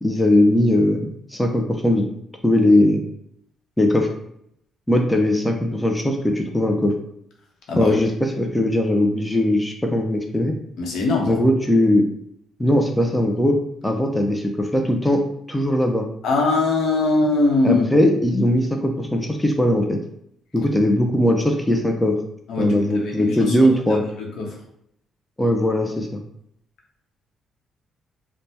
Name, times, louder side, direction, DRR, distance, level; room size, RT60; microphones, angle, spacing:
voice 1, 0.0-2.0 2.4-3.0 3.8-4.1 4.9-6.9 7.8-10.5 11.3-12.0 12.6-13.6 13.8-15.2 15.5-16.1 17.6-20.0 20.5-22.2 22.6-24.0 25.4-26.2, left 1 dB, 10° left, 3 dB, 0.4 m, -19 dB
voice 2, 10.8-11.4 16.2-17.8 22.5-24.5, left 3 dB, 75° left, 0 dB, 0.8 m, -22 dB
3.2 x 2.1 x 2.7 m, 0.72 s
cardioid pair, 85°, 0 cm